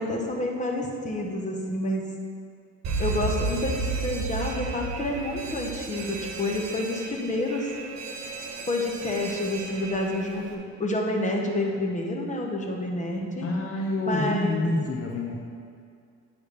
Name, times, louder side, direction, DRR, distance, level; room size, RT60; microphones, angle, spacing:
voice 1, 0.0-2.2 3.0-7.7 8.7-13.5 14.1-14.6, left 1 dB, 25° left, 0 dB, 1.3 m, -29 dB
Alarm, 2.8-10.5, right 4 dB, 65° right, 1.2 m, -33 dB
voice 2, 13.4-15.3, left 2 dB, 50° left, -1 dB, 0.9 m, -27 dB
9.6 x 3.5 x 6.9 m, 2.3 s
cardioid pair, 90°, 30 cm